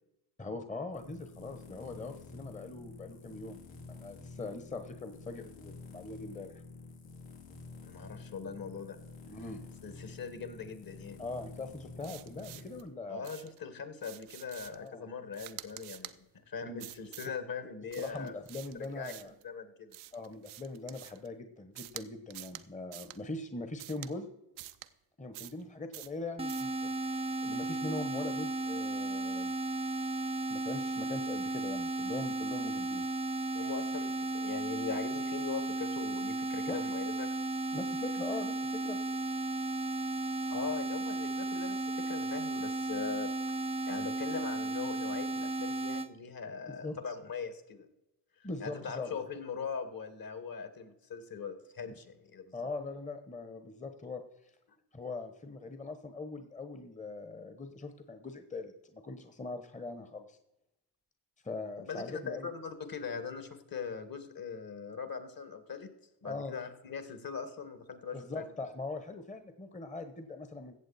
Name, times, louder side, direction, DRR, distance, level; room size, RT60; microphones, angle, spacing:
voice 1, 0.4-3.6 3.9-6.6 9.3-9.6 11.2-13.2 14.7-15.1 16.6-16.8 18.0-19.3 20.1-24.3 25.2-29.5 30.5-33.1 36.7-36.8 37.7-39.0 46.7-47.0 48.4-49.1 52.5-54.2 54.9-60.4 61.4-62.5 66.2-66.5 68.1-70.7, left 3 dB, 15° left, 8 dB, 1.2 m, -41 dB
sound 1, 0.9-12.8, left 3 dB, 75° left, 2.9 m, -49 dB
voice 2, 7.8-9.0 9.8-11.2 13.1-16.1 16.5-18.4 19.0-19.1 19.4-20.0 33.5-37.3 40.5-43.3 43.9-47.9 48.4-52.5 61.8-65.9 66.2-68.4, left 6 dB, 50° left, 9 dB, 2.1 m, -41 dB
sound 2, 12.0-12.8 13.2-13.6 14.0-14.9 15.3-16.2 16.8-17.4 17.9-19.4 19.9-21.3 21.8-22.0 22.3-22.6 22.9-23.2 23.8-24.1 24.6-24.9 25.3-25.6 25.9-26.2 26.5-26.7, right 15 dB, 85° right, 0.8 m, -48 dB
sound 3, 26.4-46.1, right 2 dB, 15° right, 0.8 m, -34 dB
15.0 x 7.8 x 4.2 m, 0.91 s
supercardioid pair, 70°, 46 cm